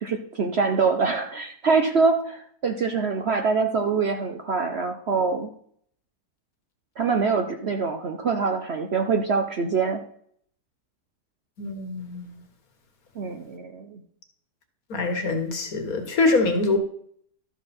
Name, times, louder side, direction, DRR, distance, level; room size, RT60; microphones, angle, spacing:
voice 1, 0.0-5.5 7.0-10.0 13.2-14.0, right 4 dB, 50° right, 6 dB, 0.8 m, -24 dB
voice 2, 11.6-12.3 14.9-16.8, left 3 dB, 60° left, 5 dB, 1.9 m, -24 dB
12.5 x 7.1 x 4.2 m, 0.63 s
omnidirectional pair, 1.7 m